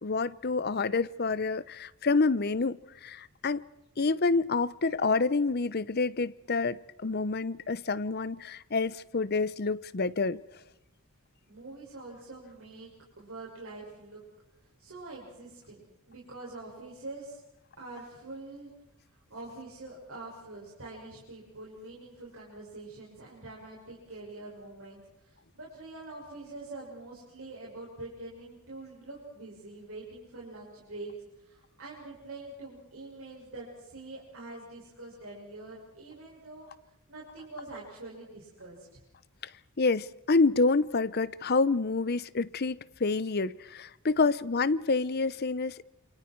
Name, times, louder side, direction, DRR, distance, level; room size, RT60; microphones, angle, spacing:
voice 1, 0.0-3.6 4.0-10.4 39.8-45.8, left 3 dB, 45° left, 0.7 m, -28 dB
voice 2, 11.5-12.9 13.2-14.2 14.8-17.4 17.8-18.7 19.1-31.1 31.4-39.0, right 2 dB, 70° right, 6.7 m, -45 dB
28.5 x 27.5 x 4.7 m
head